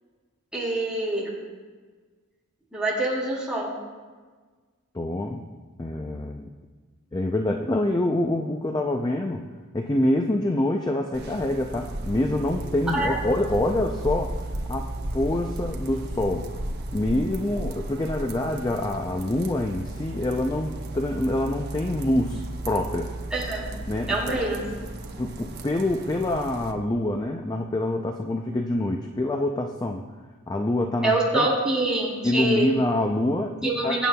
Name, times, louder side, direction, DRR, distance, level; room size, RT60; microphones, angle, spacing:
voice 1, 0.5-1.3 2.7-3.7 12.9-13.1 23.3-23.7 24.1-24.8 31.0-32.7 33.6-34.1, right 2 dB, 5° right, -6 dB, 3.4 m, -25 dB
voice 2, 4.9-5.4 5.8-6.5 7.1-9.4 9.7-14.4 14.7-16.5 16.9-23.1 23.9-24.4 25.2-30.0 30.5-31.5 32.2-34.0, left 1 dB, 20° left, 3 dB, 0.4 m, -26 dB
sound 1, 11.1-26.7, right 1 dB, 45° right, 0.9 m, -34 dB
23.0 x 9.1 x 2.3 m, 1.4 s
head